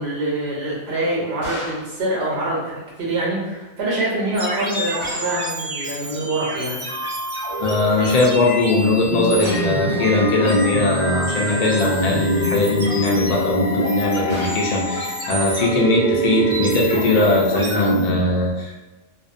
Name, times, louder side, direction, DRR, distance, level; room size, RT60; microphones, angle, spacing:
voice 1, 0.0-6.8, right 1 dB, 55° right, -4 dB, 1.0 m, -25 dB
sound 1, 1.4-2.0 5.0-5.5 9.4-9.9 14.3-14.8, equal, 75° right, 1.1 m, -34 dB
sound 2, 4.3-18.1, right 1 dB, 25° right, 1.0 m, -26 dB
voice 2, 7.6-18.8, left 2 dB, 80° left, -2 dB, 0.3 m, -19 dB
sound 3, 11.0-17.3, equal, 10° left, 0.8 m, -37 dB
2.6 x 2.1 x 2.5 m, 1.1 s
omnidirectional pair, 1.3 m